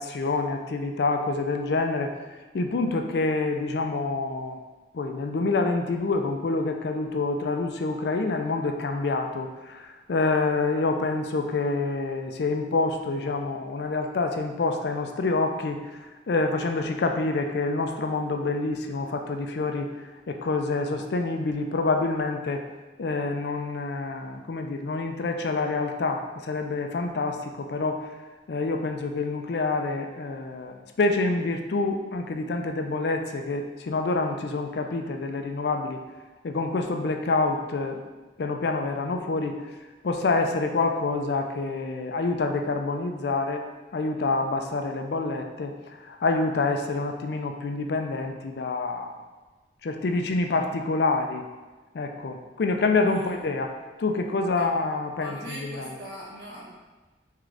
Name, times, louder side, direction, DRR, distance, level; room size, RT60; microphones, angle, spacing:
voice 1, 0.0-2.1 2.5-4.6 4.9-15.8 16.3-19.9 20.3-22.6 23.0-28.0 28.5-36.0 36.4-38.0 38.4-39.6 40.0-43.6 43.9-49.2 49.8-51.5 51.9-53.7 54.0-56.0, left 3 dB, 65° left, 5 dB, 0.4 m, -27 dB
voice 2, 53.0-53.4 54.6-54.7 55.2-56.7, equal, 70° right, -5 dB, 1.2 m, -41 dB
3.6 x 3.3 x 3.8 m, 1.2 s
head